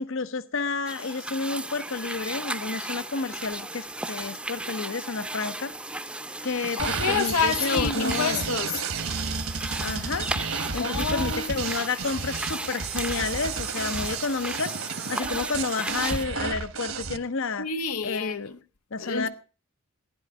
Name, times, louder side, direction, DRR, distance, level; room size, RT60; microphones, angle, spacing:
voice 1, 0.0-5.7 6.4-8.4 9.8-10.3 10.7-17.7 18.0-18.5 18.9-19.3, left 4 dB, 60° left, 0.8 m, -30 dB
sound 1, 0.9-16.3, right 2 dB, 5° right, 0.7 m, -35 dB
voice 2, 6.8-8.8 10.7-11.6 17.6-18.6 19.0-19.3, left 5 dB, 90° left, 1.0 m, -28 dB
sound 2, 6.8-17.2, right 5 dB, 70° right, 1.4 m, -32 dB
16.0 x 11.0 x 5.8 m
head